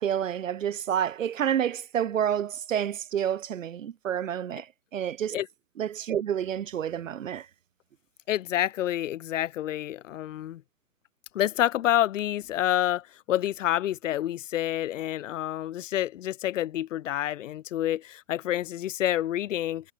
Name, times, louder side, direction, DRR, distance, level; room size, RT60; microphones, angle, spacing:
voice 1, 0.0-5.4 5.8-7.5, right 9 dB, 80° right, 0.9 m, -29 dB
voice 2, 8.3-10.6 11.3-19.9, left 12 dB, 75° left, 0.6 m, -28 dB
hypercardioid pair, 105°, 38 cm